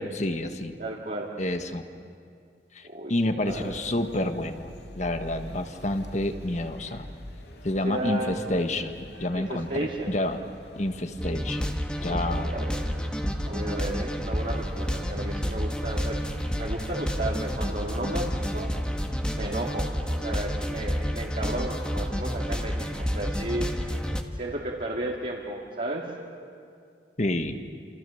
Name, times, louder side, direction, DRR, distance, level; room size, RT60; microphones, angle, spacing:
voice 1, 0.0-0.7 1.4-1.9 2.7-4.7 4.9-7.1 7.6-8.9 9.2-10.4 10.7-11.7 12.0-12.5 27.2-27.6, left 1 dB, 40° left, 7 dB, 1.4 m, -29 dB
voice 2, 0.8-1.3 2.8-3.1 3.4-3.7 7.8-8.3 9.3-10.1 12.0-12.8 13.5-16.2 16.6-18.7 19.3-23.8 24.3-26.1, right 1 dB, 50° right, -4 dB, 2.4 m, -33 dB
sound 1, 3.5-20.2, left 1 dB, 65° left, 2.5 m, -45 dB
sound 2, 11.2-24.2, equal, 5° left, 1.4 m, -30 dB
28.5 x 28.0 x 7.1 m, 2.3 s
head